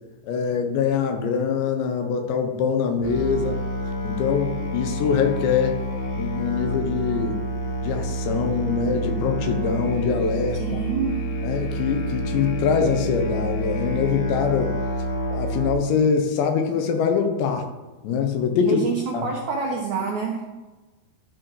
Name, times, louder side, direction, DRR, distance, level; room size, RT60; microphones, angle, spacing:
voice 1, 0.2-3.6 4.0-5.8 6.2-7.4 7.8-10.8 11.4-14.8 15.3-17.7 18.0-18.8 19.1-19.3, left 6 dB, 90° left, 5 dB, 3.3 m, -23 dB
Musical instrument, 3.0-15.7, equal, 65° left, 3.3 m, -28 dB
voice 2, 10.6-11.3 18.7-20.5, right 5 dB, 80° right, 0 dB, 1.7 m, -27 dB
12.0 x 5.0 x 4.9 m, 1.2 s
omnidirectional pair, 4.9 m